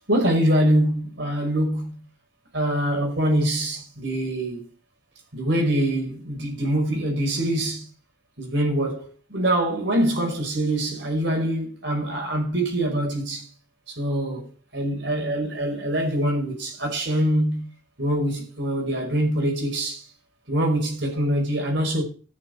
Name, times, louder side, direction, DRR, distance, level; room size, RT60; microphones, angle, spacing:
voice 1, 0.1-2.0 2.5-4.6 5.3-7.9 8.4-13.5 13.9-17.7 18.0-20.0 20.5-22.0, right 1 dB, 60° right, 5.4 m, -24 dB
13.5 x 7.3 x 6.6 m
head